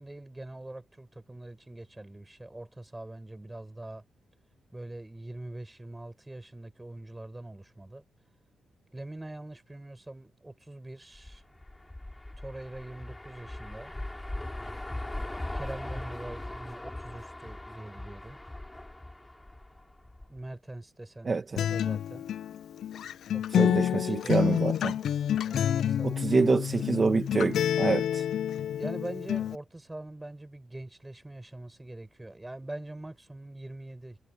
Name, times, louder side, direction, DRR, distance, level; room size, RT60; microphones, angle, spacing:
voice 1, 0.0-4.0 4.7-8.0 8.9-11.4 12.4-13.9 15.5-18.4 20.3-22.3 23.3-24.4 25.4-27.2 28.8-34.2, right 1 dB, 10° right, 6.1 m, -43 dB
sound 1, 11.1-20.4, left 1 dB, 10° left, 5.0 m, -40 dB
voice 2, 21.2-21.6 23.5-25.0 26.0-28.3, right 4 dB, 25° right, 1.3 m, -26 dB
Acoustic guitar, 21.6-29.5, left 10 dB, 70° left, 0.3 m, -28 dB
wide cardioid pair, 160°, 0 cm